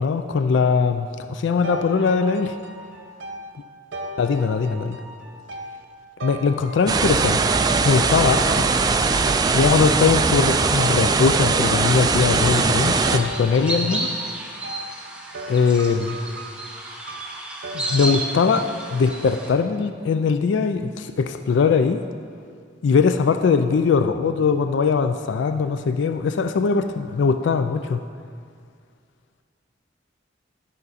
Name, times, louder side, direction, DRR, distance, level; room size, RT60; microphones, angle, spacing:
voice 1, 0.0-2.5 4.2-5.0 6.2-7.4 7.9-8.4 9.5-14.1 15.5-16.2 17.7-22.0 22.8-28.0, left 5 dB, 75° left, 9 dB, 0.3 m, -21 dB
sound 1, 1.6-7.4 8.1-9.7 10.8-18.1, right 1 dB, 70° right, 0.9 m, -37 dB
sound 2, 6.9-13.2, right 4 dB, 20° right, 0.3 m, -20 dB
sound 3, 11.9-19.5, right 1 dB, 5° right, 0.7 m, -32 dB
12.5 x 5.3 x 4.1 m, 2.2 s
head